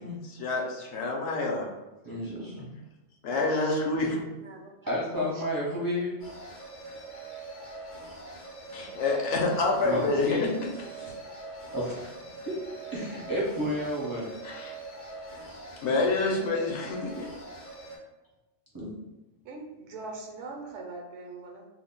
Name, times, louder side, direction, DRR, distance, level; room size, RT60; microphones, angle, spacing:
voice 1, 0.0-1.7 2.6-2.7 3.2-4.2 8.7-11.1 14.4-14.7 15.5-17.3, left 3 dB, 70° left, 0 dB, 0.9 m, -28 dB
voice 2, 2.0-2.7 4.9-6.2 9.8-10.4 11.7-12.1 12.5-12.6 12.9-14.3 18.7-18.9, equal, 25° right, -7 dB, 0.4 m, -31 dB
voice 3, 3.5-5.4 19.4-21.7, right 3 dB, 75° right, 1 dB, 0.9 m, -43 dB
sound 1, 6.2-18.0, right 2 dB, 50° left, 0.6 m, -43 dB
2.5 x 2.0 x 3.7 m, 1.0 s
omnidirectional pair, 1.3 m